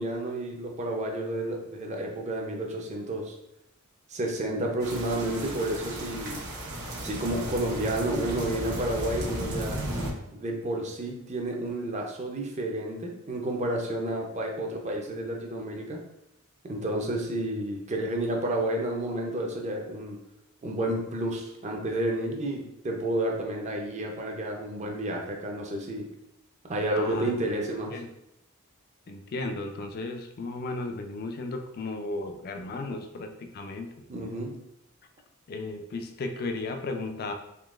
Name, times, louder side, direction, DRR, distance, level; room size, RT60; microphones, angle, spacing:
voice 1, 0.0-3.3 4.1-6.4 7.0-9.8 10.3-16.0 16.6-20.2 20.6-26.1 26.7-27.9 34.1-34.6, right 1 dB, 35° right, 1 dB, 0.5 m, -31 dB
sound 1, 4.8-10.1, right 1 dB, 50° right, 0.9 m, -35 dB
voice 2, 27.0-27.3 27.9-28.1 29.1-33.9 35.5-37.3, left 2 dB, 45° left, 5 dB, 0.4 m, -35 dB
3.7 x 2.9 x 2.4 m, 0.83 s
head